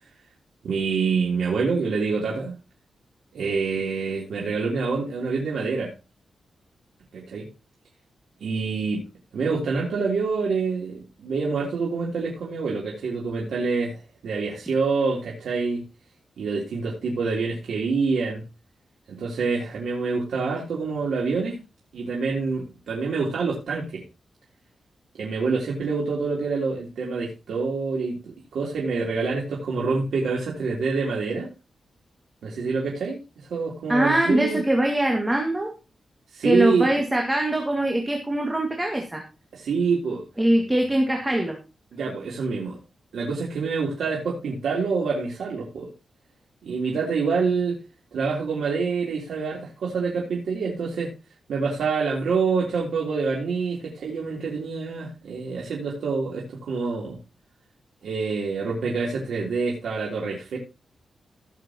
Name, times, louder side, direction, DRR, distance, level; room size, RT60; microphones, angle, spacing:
voice 1, 0.6-2.6 3.3-5.9 7.1-7.5 8.4-9.0 9.3-15.8 16.4-18.4 19.1-21.6 21.9-24.0 25.2-31.5 32.4-34.6 36.3-36.9 39.5-40.2 41.9-42.8 43.1-45.9 46.6-47.8 48.1-51.1 51.5-57.2 58.0-60.6, right 4 dB, 90° right, -3 dB, 3.5 m, -26 dB
voice 2, 33.9-35.7 36.4-39.2 40.4-41.6, right 1 dB, 15° right, 2 dB, 2.1 m, -22 dB
17.0 x 7.3 x 3.0 m, 0.28 s
wide cardioid pair, 135°, 0 cm